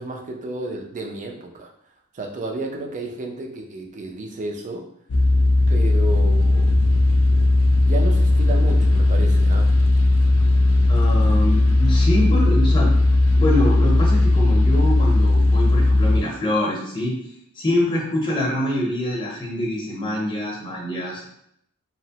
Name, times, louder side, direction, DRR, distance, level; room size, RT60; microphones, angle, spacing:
voice 1, 0.0-1.7 2.1-4.9 5.7-6.7 7.8-9.7, right 2 dB, 35° right, 2 dB, 0.4 m, -32 dB
sound 1, 5.1-16.2, left 2 dB, 80° left, 0.5 m, -17 dB
voice 2, 10.9-12.9 13.3-17.1 17.6-21.2, left 1 dB, 25° left, -2 dB, 0.7 m, -25 dB
2.9 x 2.0 x 2.8 m, 0.73 s
head